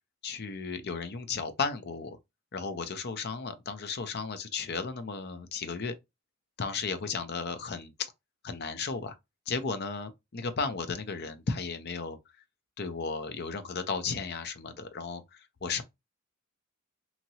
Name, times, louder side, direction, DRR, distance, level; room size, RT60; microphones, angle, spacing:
voice 1, 0.2-2.2 2.5-5.9 6.6-7.9 8.4-9.1 9.5-12.2 12.8-15.8, left 4 dB, 55° left, 0.6 m, -34 dB
2.8 x 2.7 x 2.8 m
head